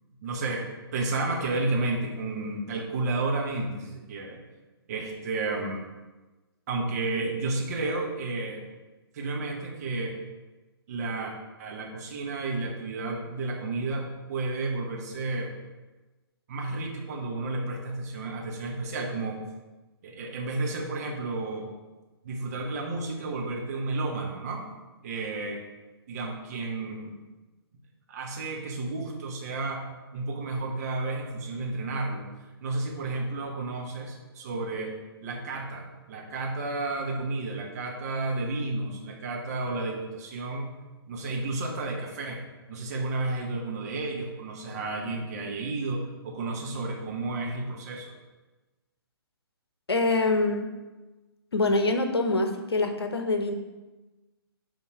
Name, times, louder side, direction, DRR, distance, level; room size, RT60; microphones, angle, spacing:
voice 1, 0.2-4.4 4.9-5.8 6.7-8.6 9.1-10.2 10.9-15.5 16.5-19.4 20.0-21.7 22.2-24.6 25.0-25.6 26.1-27.2 28.1-32.3 32.6-34.9 35.2-40.7 41.1-42.4 42.7-48.1, right 2 dB, 40° right, 0 dB, 1.4 m, -32 dB
voice 2, 49.9-50.7 51.5-53.5, left 2 dB, 75° left, 6 dB, 1.0 m, -25 dB
8.7 x 3.7 x 4.8 m, 1.2 s
figure-of-eight pair, 130°, 13 cm